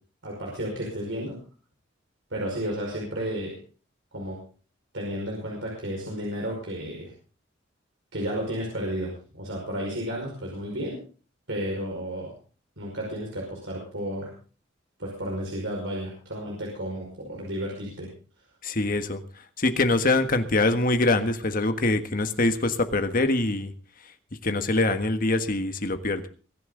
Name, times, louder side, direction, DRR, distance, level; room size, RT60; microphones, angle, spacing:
voice 1, 0.2-1.4 2.3-3.6 4.1-4.4 4.9-7.1 8.1-11.0 11.5-12.3 12.8-14.3 15.0-18.1, equal, 70° right, -2 dB, 5.3 m, -32 dB
voice 2, 18.6-19.2 19.6-23.7 24.4-26.2, left 2 dB, 45° left, 8 dB, 1.6 m, -24 dB
23.0 x 11.0 x 3.9 m, 0.38 s
head